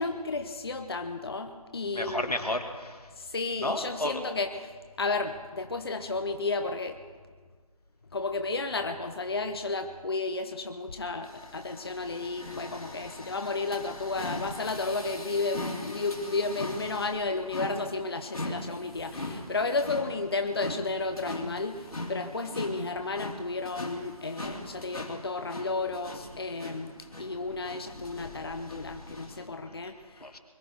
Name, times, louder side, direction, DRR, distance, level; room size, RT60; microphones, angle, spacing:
voice 1, 0.0-2.4 3.2-4.7 5.0-7.0 8.1-26.9 27.2-30.2, left 3 dB, 40° left, 6 dB, 0.8 m, -32 dB
voice 2, 1.9-3.0 3.6-4.2 30.2-30.4, left 1 dB, 85° left, 5 dB, 2.3 m, -31 dB
sound 1, 11.2-29.5, left 1 dB, 70° left, 3.2 m, -40 dB
22.5 x 13.5 x 4.6 m, 1.5 s
figure-of-eight pair, 160°, 19 cm